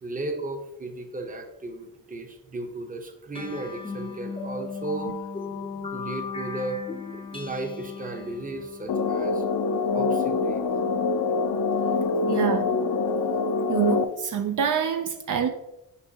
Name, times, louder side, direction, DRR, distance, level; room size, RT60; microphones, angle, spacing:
voice 1, 0.0-5.2 5.9-6.8 7.1-9.4 9.9-10.7 11.8-11.9, right 2 dB, 25° right, 5 dB, 0.8 m, -35 dB
sound 1, 3.3-10.2, left 5 dB, 15° left, 0.5 m, -37 dB
sound 2, 8.9-14.0, left 4 dB, 80° left, 0.5 m, -25 dB
voice 2, 12.3-12.8 13.7-15.5, right 8 dB, 65° right, 7 dB, 0.5 m, -26 dB
6.9 x 5.4 x 2.8 m, 0.90 s
wide cardioid pair, 140°, 34 cm